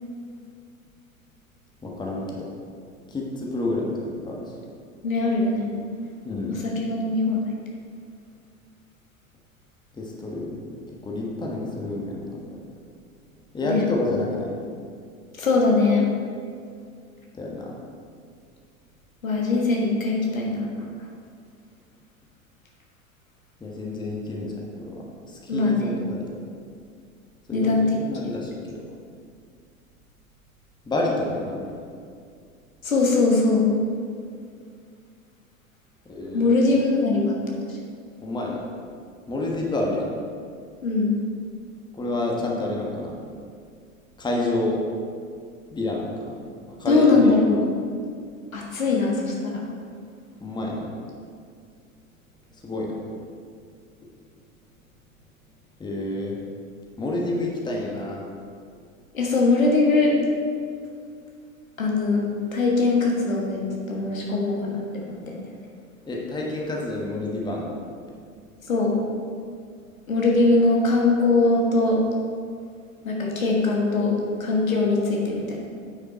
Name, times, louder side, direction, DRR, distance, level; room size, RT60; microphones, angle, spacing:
voice 1, 1.8-2.5 3.1-4.5 6.2-6.6 9.9-10.6 11.0-12.6 13.5-14.6 17.3-17.7 23.6-26.3 27.5-29.0 30.8-31.8 36.0-36.5 38.2-38.6 39.3-40.1 41.9-43.2 44.2-44.8 45.7-46.3 46.7-47.4 50.4-50.9 52.6-53.0 55.8-56.4 57.0-58.3 66.1-67.8, left 2 dB, 10° left, -2 dB, 1.3 m, -29 dB
voice 2, 5.0-5.7 6.5-7.4 13.6-13.8 15.4-16.1 19.2-20.9 25.5-25.9 27.5-27.9 28.2-28.3 32.8-33.7 36.3-37.4 37.7-37.8 40.8-41.2 46.9-47.6 48.5-49.6 59.1-60.2 61.8-62.2 62.5-65.4 68.7-69.0 70.1-72.0 73.0-75.6, left 3 dB, 75° left, -2 dB, 1.7 m, -21 dB
9.2 x 6.0 x 4.3 m, 2.2 s
figure-of-eight pair, 85°, 41 cm